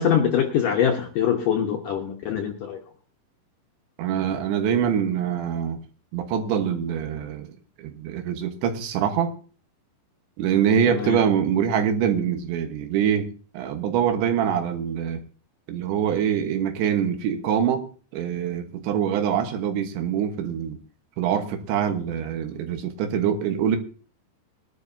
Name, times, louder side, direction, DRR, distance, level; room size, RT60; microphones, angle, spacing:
voice 1, 0.0-2.8 10.9-11.2, left 8 dB, 70° left, 1 dB, 2.1 m, -23 dB
voice 2, 4.0-5.8 6.1-7.5 7.8-9.3 10.4-15.2 15.7-17.9 18.1-20.8 21.2-23.8, right 8 dB, 80° right, 6 dB, 3.6 m, -24 dB
21.5 x 11.5 x 2.7 m, 0.39 s
omnidirectional pair, 5.1 m